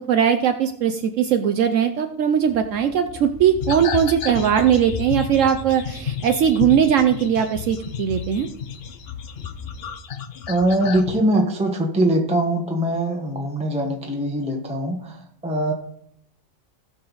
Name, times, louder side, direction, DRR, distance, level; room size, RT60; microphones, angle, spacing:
voice 1, 0.0-8.5, right 8 dB, 70° right, 7 dB, 1.0 m, -19 dB
sound 1, 2.5-10.0, equal, 30° left, 1.9 m, -40 dB
sound 2, 3.6-11.2, left 8 dB, 55° left, 0.8 m, -32 dB
voice 2, 10.5-15.7, right 1 dB, 5° right, 1 dB, 1.0 m, -22 dB
16.5 x 6.5 x 3.9 m, 0.70 s
omnidirectional pair, 1.4 m